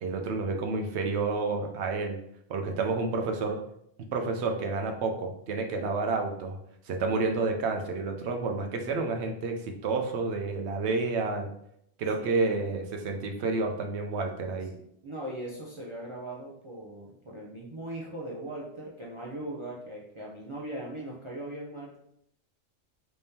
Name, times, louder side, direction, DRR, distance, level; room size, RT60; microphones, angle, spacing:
voice 1, 0.0-2.2 2.5-3.6 4.1-6.6 6.8-11.5 12.0-14.7, right 3 dB, 70° right, 4 dB, 0.8 m, -30 dB
voice 2, 12.2-12.6 14.7-22.0, right 1 dB, 40° right, -4 dB, 0.4 m, -39 dB
3.4 x 3.3 x 2.7 m, 0.74 s
omnidirectional pair, 1.2 m